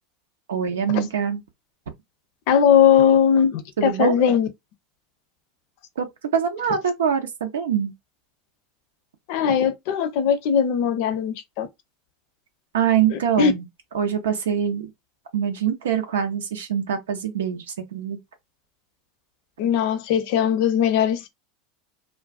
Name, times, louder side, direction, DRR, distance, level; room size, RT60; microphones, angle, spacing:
voice 1, 0.5-1.4 3.8-4.2 6.0-6.1 6.3-7.9 12.7-13.7 13.9-14.9 15.3-17.6 17.9-18.2, right 8 dB, 80° right, 0.6 m, -24 dB
voice 2, 2.5-4.5 9.3-11.7 13.1-13.5 19.6-21.3, left 8 dB, 65° left, 0.5 m, -19 dB
2.4 x 2.2 x 2.3 m
hypercardioid pair, 85°, 0 cm